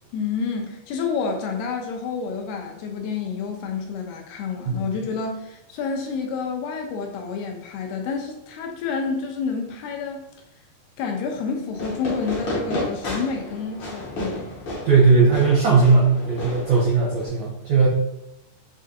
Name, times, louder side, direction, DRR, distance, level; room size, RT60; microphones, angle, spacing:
voice 1, 0.1-10.3 11.0-14.5, left 5 dB, 85° left, 3 dB, 2.6 m, -29 dB
Fireworks, 11.7-17.3, left 1 dB, 70° left, 1.3 m, -32 dB
voice 2, 14.8-17.9, right 4 dB, 85° right, -5 dB, 1.5 m, -18 dB
6.4 x 2.5 x 2.6 m, 0.85 s
omnidirectional pair, 4.5 m